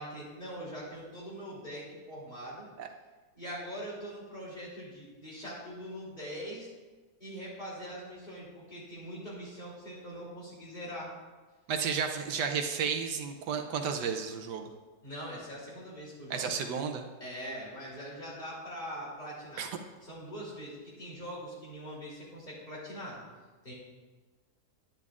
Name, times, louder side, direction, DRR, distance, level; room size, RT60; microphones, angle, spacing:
voice 1, 0.0-2.7 3.3-6.7 7.2-11.1 15.0-16.5 17.2-19.7 20.0-23.2 23.6-23.7, equal, 25° left, -7 dB, 3.2 m, -42 dB
voice 2, 11.7-14.7 16.3-17.0 19.6-19.7, right 6 dB, 80° right, 5 dB, 1.3 m, -32 dB
10.5 x 10.0 x 2.4 m, 1.3 s
omnidirectional pair, 1.8 m